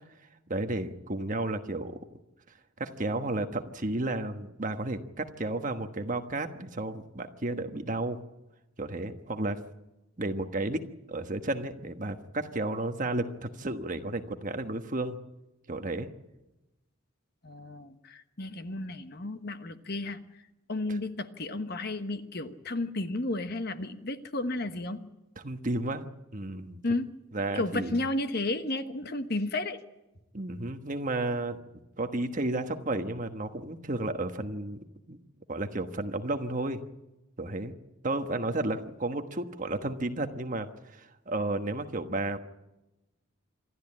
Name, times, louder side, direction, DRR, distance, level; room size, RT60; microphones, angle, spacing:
voice 1, 0.5-2.0 2.8-8.2 8.8-9.6 10.2-10.8 11.1-15.2 15.7-16.1 20.9-21.0 25.4-26.0 26.3-26.8 27.3-28.0 30.3-31.6 32.0-34.8 35.1-35.2 35.5-36.8 37.4-37.7 38.0-42.4, right 2 dB, 40° right, 7 dB, 1.3 m, -32 dB
voice 2, 17.4-20.2 20.7-25.0 26.8-27.1 27.5-29.8, left 2 dB, 50° left, 9 dB, 1.2 m, -32 dB
26.5 x 12.5 x 8.7 m, 0.98 s
head